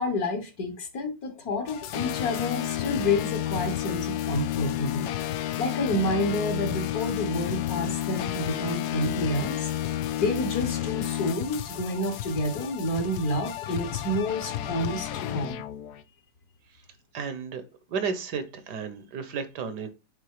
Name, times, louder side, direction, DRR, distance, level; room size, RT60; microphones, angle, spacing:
voice 1, 0.0-5.1 5.6-9.7 10.2-15.6, left 1 dB, 55° left, 1.7 m, -29 dB
sound 1, 1.7-16.0, left 12 dB, 70° left, 1.0 m, -31 dB
voice 2, 17.1-17.6 17.9-19.9, right 5 dB, 65° right, 1.4 m, -32 dB
6.9 x 3.7 x 4.7 m
omnidirectional pair, 2.0 m